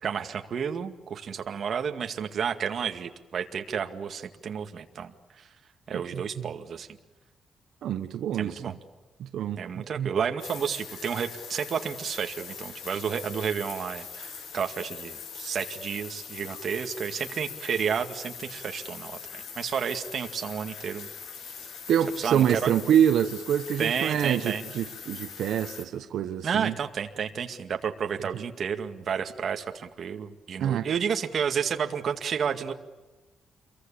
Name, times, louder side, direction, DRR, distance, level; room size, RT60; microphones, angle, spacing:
voice 1, 0.0-5.5 5.9-6.9 8.3-8.7 9.6-21.1 22.2-22.7 23.8-24.6 26.4-32.7, right 7 dB, 45° right, 2.1 m, -31 dB
voice 2, 7.8-8.6 9.2-10.1 21.9-26.7 28.3-28.4 30.6-30.8, right 9 dB, 80° right, 1.3 m, -26 dB
sound 1, 10.4-25.8, left 6 dB, 85° left, 4.7 m, -42 dB
28.0 x 23.0 x 8.6 m
wide cardioid pair, 175°, 0 cm